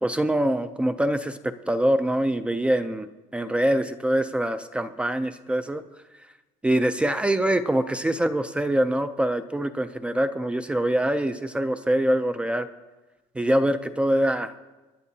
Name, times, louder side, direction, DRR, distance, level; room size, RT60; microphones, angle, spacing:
voice 1, 0.0-5.8 6.6-12.7 13.4-14.5, right 1 dB, 10° right, 10 dB, 0.3 m, -24 dB
25.0 x 10.5 x 2.7 m, 1.1 s
cardioid pair, 170°, 14 cm